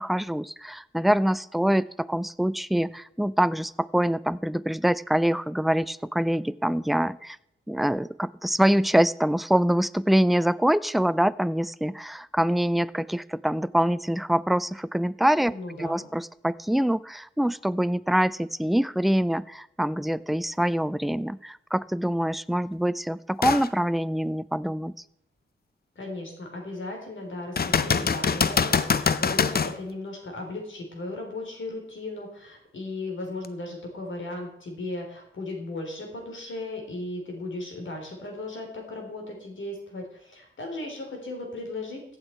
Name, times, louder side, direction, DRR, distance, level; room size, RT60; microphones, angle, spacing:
voice 1, 0.0-7.4 7.7-15.5 15.8-24.9, equal, ahead, 16 dB, 0.4 m, -25 dB
voice 2, 15.5-16.1 26.0-42.2, left 2 dB, 70° left, 2 dB, 3.8 m, -36 dB
sound 1, 23.4-23.7 24.3-24.4 27.6-29.8 33.4-33.5, left 6 dB, 50° left, 0.7 m, -24 dB
15.0 x 8.3 x 4.6 m, 0.78 s
cardioid pair, 70°, 20 cm